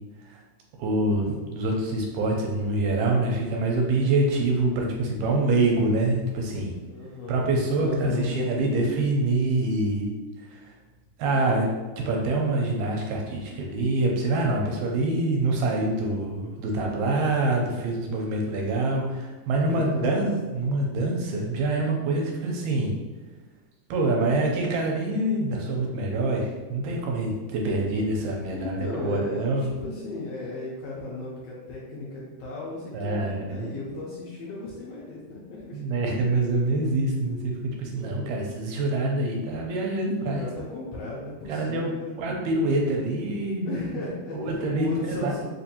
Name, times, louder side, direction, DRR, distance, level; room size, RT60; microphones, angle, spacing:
voice 1, 0.8-6.7 7.3-10.1 10.5-10.7 11.2-11.7 12.0-22.9 23.9-29.6 32.9-33.7 35.7-37.5 37.8-40.4 41.5-41.9 42.2-44.0 44.3-45.4, right 2 dB, 85° right, 0 dB, 1.9 m, -25 dB
voice 2, 6.9-7.5 7.8-8.3 19.6-20.3 28.5-35.8 37.9-38.4 40.2-42.2 43.6-44.4 44.7-45.4, left 2 dB, 80° left, -5 dB, 1.6 m, -35 dB
4.5 x 2.6 x 2.8 m, 1.2 s
omnidirectional pair, 3.4 m